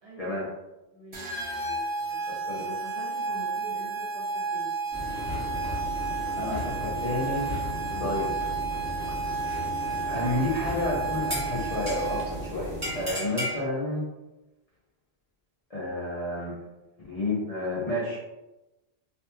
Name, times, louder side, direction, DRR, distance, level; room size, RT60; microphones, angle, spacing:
voice 1, 0.0-0.4 0.9-4.7 7.9-8.1, equal, 65° right, -4 dB, 1.1 m, -45 dB
sound 1, 1.1-12.5, right 3 dB, 45° right, 0.4 m, -32 dB
sound 2, 4.9-13.1, left 1 dB, 5° left, 1.0 m, -36 dB
voice 2, 6.4-7.5 8.0-8.3 10.1-14.0 15.7-16.5 17.0-18.2, left 2 dB, 40° left, -7 dB, 0.6 m, -30 dB
sound 3, 10.5-10.8 11.3-12.3 12.8-13.6, equal, 15° right, 1.1 m, -34 dB
2.8 x 2.5 x 2.2 m, 1.0 s
omnidirectional pair, 1.1 m